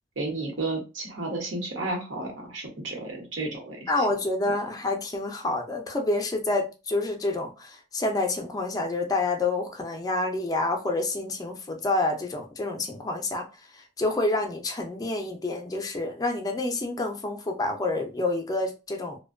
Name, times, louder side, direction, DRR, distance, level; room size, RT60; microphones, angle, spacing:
voice 1, 0.2-4.1, right 2 dB, 75° right, 1.0 m, -32 dB
voice 2, 3.9-13.5 14.0-19.2, left 2 dB, 20° left, 0.4 m, -28 dB
2.5 x 2.1 x 2.4 m
head